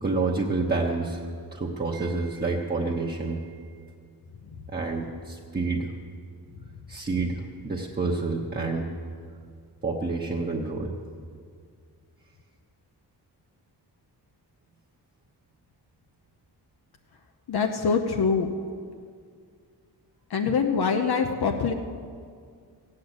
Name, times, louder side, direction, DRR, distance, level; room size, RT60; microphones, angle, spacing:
voice 1, 0.0-1.2 1.5-3.5 4.7-5.9 6.9-8.9 9.8-10.9, right 3 dB, 25° right, -3 dB, 0.9 m, -28 dB
voice 2, 17.5-18.5 20.3-21.7, left 5 dB, 65° left, 4 dB, 0.9 m, -24 dB
16.0 x 8.6 x 7.9 m, 2.1 s
wide cardioid pair, 160°, 40 cm